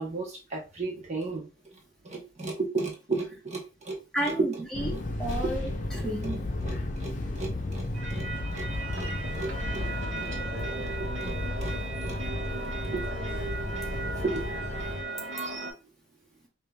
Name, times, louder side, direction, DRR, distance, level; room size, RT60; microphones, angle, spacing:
voice 1, 0.0-1.5 2.0-4.0 5.4-6.4 6.6-7.1 7.4-8.2 8.5-8.7 8.9-9.1 9.3-9.5 9.7-9.9 10.2-10.3 10.8-10.9 11.2-11.3 11.6-11.7 12.0-12.2 12.9-13.0 14.2-14.4, right 3 dB, 40° right, 0.9 m, -34 dB
voice 2, 4.1-6.4, right 1 dB, ahead, 1.0 m, -32 dB
Fixed-wing aircraft airplane, 4.7-15.0, left 2 dB, 45° left, 0.7 m, -33 dB
sound 1, 7.9-15.7, right 3 dB, 85° right, 1.3 m, -36 dB
5.0 x 2.7 x 2.2 m
head